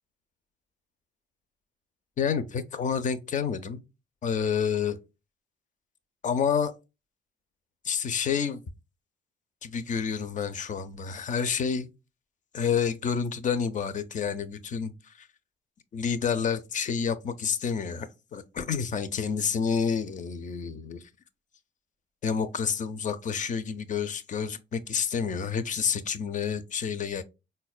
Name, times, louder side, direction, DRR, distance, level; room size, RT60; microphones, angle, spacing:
voice 1, 2.2-3.8 4.2-5.0 6.2-6.7 7.8-8.6 9.6-11.9 12.5-15.3 15.9-21.0 22.2-27.2, left 6 dB, 40° left, 0.4 m, -29 dB
4.0 x 2.1 x 2.3 m
cardioid pair, 90°, 20 cm